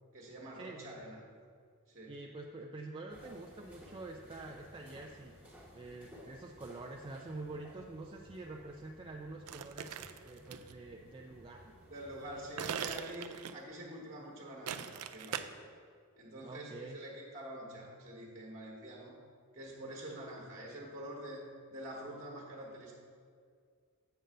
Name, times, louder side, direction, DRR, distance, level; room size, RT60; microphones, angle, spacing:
voice 1, 0.1-1.2 1.9-2.1 11.9-15.7 16.2-19.2 19.5-23.0, right 1 dB, 40° right, -4 dB, 1.3 m, -46 dB
voice 2, 2.1-5.4 5.7-11.7 12.7-12.8 16.4-17.0, right 2 dB, 25° right, 0 dB, 0.4 m, -47 dB
sound 1, 3.1-12.7, equal, 5° right, 1.0 m, -57 dB
sound 2, 9.5-10.7 12.6-13.7 14.7-15.4, right 8 dB, 85° right, 0.4 m, -40 dB
7.9 x 4.0 x 6.6 m, 2.1 s
head